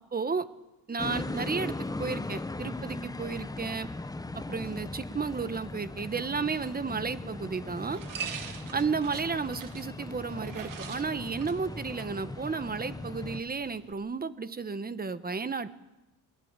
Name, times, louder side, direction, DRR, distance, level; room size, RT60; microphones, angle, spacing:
voice 1, 0.1-0.5 0.9-3.9 4.5-8.0 8.7-15.8, right 5 dB, 25° right, 13 dB, 1.1 m, -33 dB
sound 1, 1.0-13.4, left 2 dB, 10° left, 0.8 m, -39 dB
sound 2, 5.9-13.9, right 6 dB, 60° right, 2.2 m, -45 dB
22.5 x 16.0 x 8.9 m, 1.0 s
cardioid pair, 115°, 36 cm